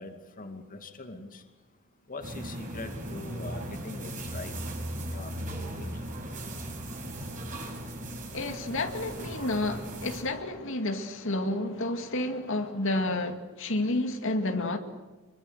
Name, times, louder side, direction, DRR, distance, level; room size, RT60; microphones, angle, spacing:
voice 1, 0.0-1.5 2.1-5.5 5.8-6.1 6.8-7.1, left 2 dB, 40° left, 2.4 m, -43 dB
sound 1, 2.2-10.2, right 1 dB, 35° right, 7.0 m, -37 dB
voice 2, 8.3-14.8, left 2 dB, 60° left, 2.3 m, -30 dB
27.0 x 23.5 x 8.1 m
head